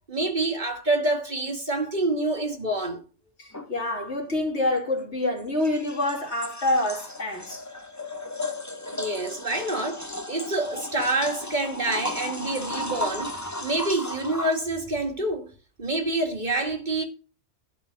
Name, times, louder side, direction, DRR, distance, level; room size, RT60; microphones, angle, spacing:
voice 1, 0.1-3.0 8.9-15.5 15.8-17.0, right 2 dB, 40° right, 2.4 m, -27 dB
voice 2, 3.4-7.6, left 1 dB, 70° left, 3.4 m, -27 dB
sound 1, 3.5-3.7 5.4-14.6, left 1 dB, 15° left, 0.8 m, -35 dB
12.0 x 4.5 x 8.3 m
omnidirectional pair, 1.2 m